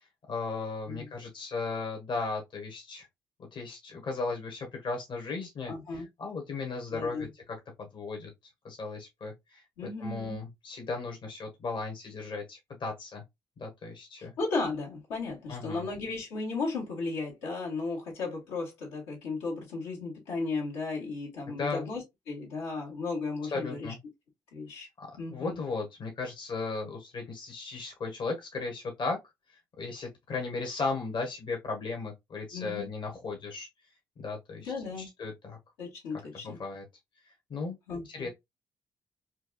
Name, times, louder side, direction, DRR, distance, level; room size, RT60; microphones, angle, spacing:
voice 1, 0.3-3.1 3.5-8.3 8.6-9.6 10.0-13.2 13.6-14.3 15.5-15.9 21.5-21.9 23.4-24.0 25.0-29.2 29.8-33.7 34.2-34.7 35.2-35.6 36.3-36.9 37.5-37.8 38.1-38.3, left 4 dB, 55° left, 1.3 m, -36 dB
voice 2, 5.7-6.0 6.9-7.3 9.8-10.4 14.4-23.9 24.5-24.9 25.2-25.6 32.5-32.9 34.6-35.1 35.8-36.6 37.9-38.3, left 3 dB, 85° left, 1.7 m, -35 dB
4.5 x 2.4 x 2.4 m
supercardioid pair, 50°, 9 cm